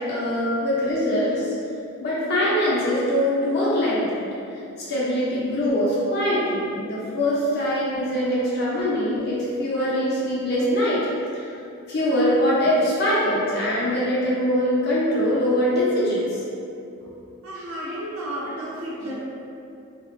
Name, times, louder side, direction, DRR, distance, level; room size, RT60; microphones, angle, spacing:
voice 1, 0.0-1.5 2.0-4.2 4.9-11.0 11.3-11.5 11.9-16.4, equal, 50° left, -8 dB, 0.5 m, -23 dB
voice 2, 17.4-19.1, right 1 dB, 75° right, -6 dB, 0.7 m, -32 dB
3.3 x 2.1 x 2.5 m, 2.6 s
head